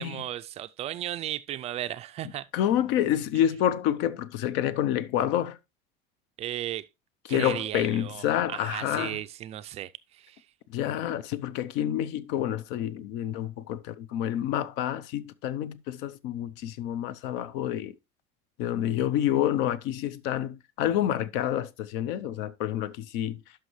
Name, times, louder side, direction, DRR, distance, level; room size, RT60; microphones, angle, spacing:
voice 1, 0.0-2.5 6.4-6.9 7.3-10.4, right 12 dB, 35° right, 0.3 m, -35 dB
voice 2, 2.5-5.6 7.3-9.2 10.7-17.9 18.6-23.4, left 11 dB, 65° left, 0.7 m, -28 dB
11.5 x 5.6 x 3.1 m
cardioid pair, 160°, 20 cm